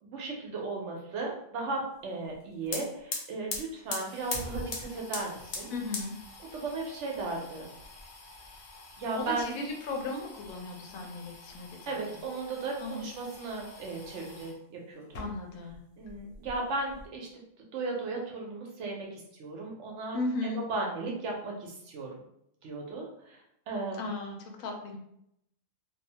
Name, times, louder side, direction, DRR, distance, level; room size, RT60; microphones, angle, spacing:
voice 1, 0.0-5.7 6.5-7.7 9.0-9.5 11.9-15.1 16.0-17.3 17.7-20.2 20.5-22.1 22.6-23.4 23.7-24.0, right 3 dB, 70° right, -1 dB, 0.8 m, -36 dB
sound 1, 2.3-2.4 2.6-14.6 15.0-15.8 16.0-17.0, left 3 dB, 65° left, 0.8 m, -42 dB
voice 2, 5.7-6.1 9.2-12.2 12.8-13.1 15.2-15.8 20.1-20.6 24.0-25.0, left 2 dB, 85° left, 2 dB, 1.0 m, -36 dB
2.7 x 2.0 x 2.7 m, 0.76 s
omnidirectional pair, 1.4 m